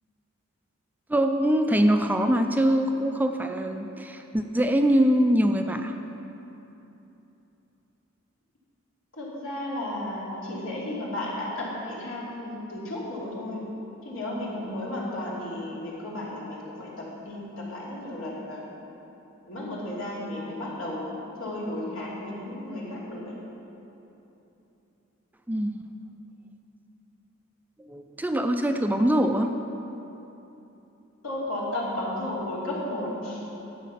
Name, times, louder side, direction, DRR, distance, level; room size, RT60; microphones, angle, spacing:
voice 1, 1.1-5.9 25.5-25.8 27.9-29.5, equal, 10° right, 6 dB, 0.4 m, -23 dB
voice 2, 9.1-13.6 14.0-18.6 19.5-23.3 31.2-33.4, left 1 dB, 85° left, -5 dB, 2.7 m, -33 dB
11.5 x 7.4 x 5.7 m, 3.0 s
head